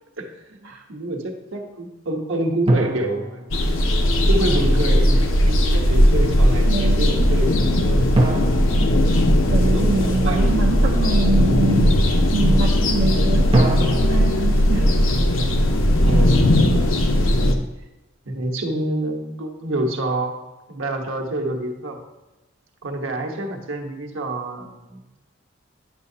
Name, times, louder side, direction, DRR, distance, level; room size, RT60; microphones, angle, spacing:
voice 1, 0.2-3.5 4.3-8.5 9.6-11.4 12.3-12.6 16.0-16.5 18.2-22.0 22.8-25.0, right 1 dB, 85° right, 1 dB, 1.2 m, -28 dB
sound 1, 2.7-4.3 8.1-10.0 13.5-15.8, right 1 dB, 25° right, 0.8 m, -25 dB
sound 2, 3.5-17.5, left 1 dB, 90° left, 0.8 m, -18 dB
voice 2, 6.6-7.3 9.5-12.0 12.3-15.0 15.6-15.7, right 3 dB, 70° right, 0 dB, 0.6 m, -25 dB
10.0 x 6.6 x 2.8 m, 1.0 s
head